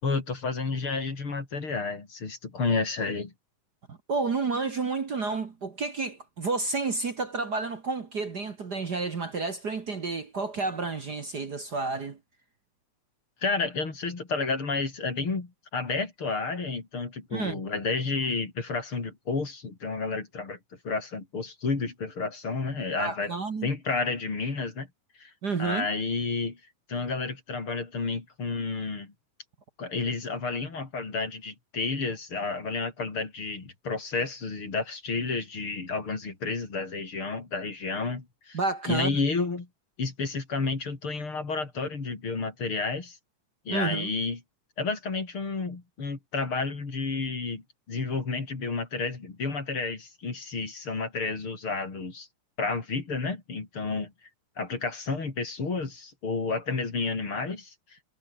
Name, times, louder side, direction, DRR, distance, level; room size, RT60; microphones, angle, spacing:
voice 1, 0.0-3.3 13.4-20.6 20.8-23.3 23.6-24.9 25.2-25.3 25.6-26.6 26.9-29.1 29.8-38.6 38.9-39.7 40.0-43.2 43.7-44.4 44.8-47.6 47.9-52.3 52.6-54.1 54.6-58.0, left 4 dB, 40° left, 4.7 m, -31 dB
voice 2, 3.9-12.2 17.3-17.6 23.0-23.7 25.4-25.9 38.5-39.2 43.7-44.1, right 4 dB, 40° right, 1.7 m, -30 dB
omnidirectional pair, 3.6 m